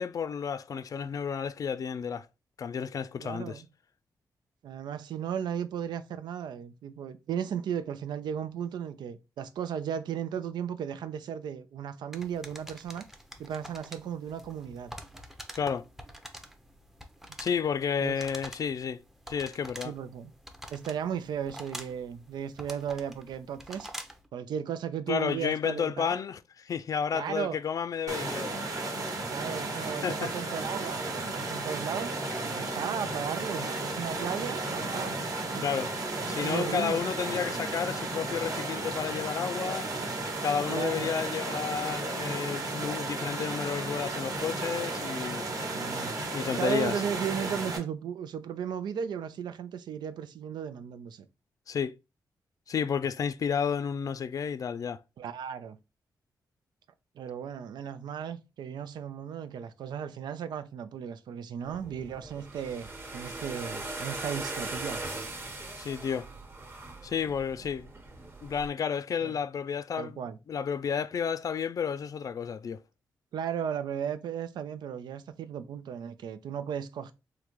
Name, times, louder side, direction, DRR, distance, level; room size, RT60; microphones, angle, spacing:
voice 1, 0.0-2.3 2.6-3.6 15.5-15.8 17.4-19.0 19.3-19.9 25.1-28.5 30.0-30.3 35.6-35.9 36.3-39.9 40.4-45.4 46.3-46.9 51.7-51.9 52.7-55.0 65.8-66.3 67.0-67.9 68.4-72.8, left 7 dB, 55° left, 0.3 m, -31 dB
voice 2, 3.2-3.7 4.6-13.0 13.4-14.9 18.0-18.2 19.8-20.3 20.7-23.9 24.3-26.1 27.1-27.6 29.3-32.2 32.4-35.6 36.4-37.0 40.7-41.2 45.6-46.2 46.6-51.3 55.2-55.8 57.2-65.0 69.2-69.3 70.0-70.4 73.3-77.1, right 8 dB, 80° right, 0.4 m, -35 dB
sound 1, 12.1-24.3, equal, 5° right, 0.6 m, -46 dB
sound 2, 28.1-47.8, right 2 dB, 55° right, 1.1 m, -34 dB
sound 3, 61.6-68.7, right 2 dB, 30° right, 0.9 m, -40 dB
3.7 x 2.2 x 3.0 m
cardioid pair, 70°, 7 cm